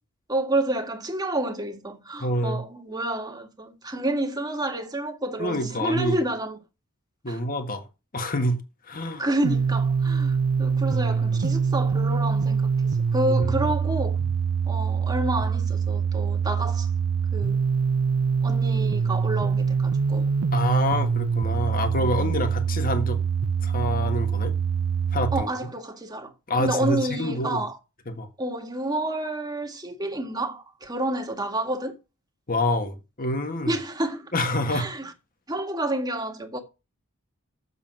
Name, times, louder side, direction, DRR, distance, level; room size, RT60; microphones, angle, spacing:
voice 1, 0.3-6.6 7.3-7.4 9.2-14.2 14.7-16.9 17.3-17.6 18.4-20.3 22.0-22.3 25.3-26.3 26.6-27.8 28.4-31.9 33.7-34.3 34.7-35.1 35.5-36.6, right 1 dB, 20° right, 1.8 m, -29 dB
voice 2, 2.2-2.6 5.4-6.2 7.2-7.9 8.1-9.3 10.9-11.3 13.3-13.7 14.0-14.3 20.5-23.2 23.6-24.5 25.1-25.5 26.5-27.6 28.1-28.3 32.5-33.8 34.3-34.9, left 1 dB, 40° left, 1.7 m, -27 dB
sound 1, 9.4-25.4, right 6 dB, 90° right, 0.5 m, -24 dB
7.4 x 7.0 x 7.5 m
head